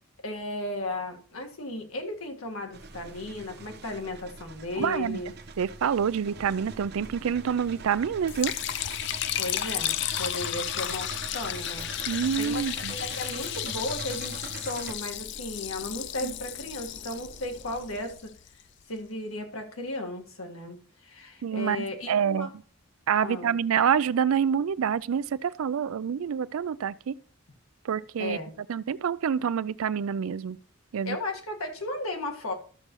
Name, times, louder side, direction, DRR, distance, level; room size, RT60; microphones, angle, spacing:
voice 1, 0.2-5.3 9.4-12.6 12.9-18.3 18.9-20.8 21.0-22.5 23.2-23.5 28.2-28.5 31.0-32.5, left 2 dB, 90° left, 1.7 m, -35 dB
sound 1, 2.7-14.9, right 3 dB, 50° right, 0.7 m, -43 dB
voice 2, 4.8-5.2 5.6-8.5 12.1-13.0 16.2-16.3 21.4-22.5 23.1-27.1 27.8-28.4 28.7-30.6 30.9-31.2, right 7 dB, 90° right, 0.4 m, -27 dB
sound 2, 6.2-18.1, equal, 30° left, 2.2 m, -53 dB
Liquid, 8.3-18.5, left 12 dB, 55° left, 0.4 m, -33 dB
13.0 x 6.7 x 3.0 m
head